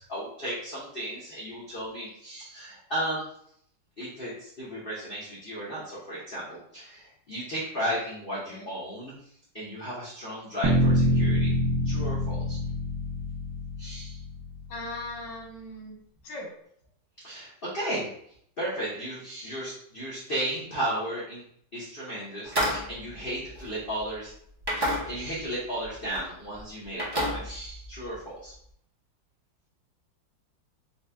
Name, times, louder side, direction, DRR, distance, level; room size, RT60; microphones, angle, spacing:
voice 1, 0.0-3.2 4.0-11.5 11.8-12.6 13.8-14.2 17.2-21.4 21.7-24.3 24.7-28.5, right 1 dB, 45° left, -8 dB, 0.7 m, -35 dB
voice 2, 8.3-8.7 14.7-16.0 16.2-16.5, left 2 dB, 85° left, -1 dB, 1.9 m, -39 dB
sound 1, 10.6-14.7, left 1 dB, 70° right, 0.8 m, -26 dB
sound 2, 22.4-24.1 24.6-25.5 25.8-26.2 26.5-28.1, equal, 35° right, 0.4 m, -31 dB
4.2 x 2.3 x 3.4 m, 0.67 s
omnidirectional pair, 2.2 m